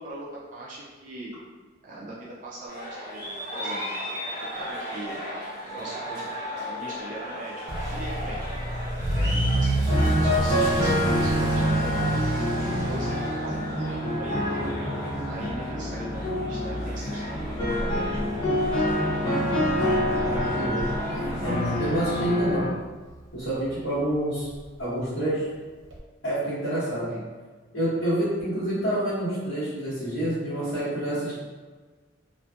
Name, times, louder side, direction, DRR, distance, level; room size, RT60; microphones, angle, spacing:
voice 1, 0.0-1.3 1.8-4.0 4.4-5.2 5.5-7.6 7.9-8.7 9.0-12.1 12.5-19.0 27.1-27.3, right 1 dB, 40° right, -6 dB, 0.4 m, -40 dB
sound 1, 2.7-22.3, equal, 45° left, 1.3 m, -37 dB
Motor vehicle (road) / Accelerating revving vroom, 7.7-22.5 22.8-23.2 23.7-23.8 24.1-24.2 24.5-24.6 25.9-26.0, right 1 dB, 75° right, 0.7 m, -31 dB
sound 2, 9.9-22.7, equal, 25° left, 0.6 m, -27 dB
voice 2, 20.2-20.9 21.4-22.7 23.3-24.5 24.8-25.5 26.2-27.2 27.7-31.3, right 1 dB, 70° left, -15 dB, 1.2 m, -27 dB
2.6 x 2.5 x 2.4 m, 1.4 s
head